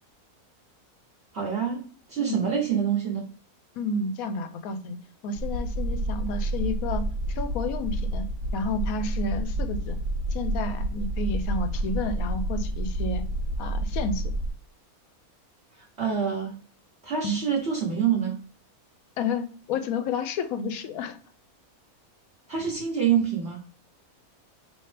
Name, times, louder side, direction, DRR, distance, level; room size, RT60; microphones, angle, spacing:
voice 1, 1.3-1.8 2.1-3.2 16.0-16.6 17.0-18.4 22.5-23.6, right 7 dB, 50° right, -5 dB, 1.1 m, -26 dB
voice 2, 3.8-5.0 5.2-7.0 7.3-8.3 8.5-10.0 10.3-13.2 13.6-14.2 17.2-17.4 19.2-21.2, left 3 dB, 75° left, 10 dB, 1.0 m, -31 dB
sound 1, 5.4-14.5, right 1 dB, 70° right, 1.2 m, -29 dB
4.4 x 3.0 x 3.2 m, 0.41 s
omnidirectional pair, 1.6 m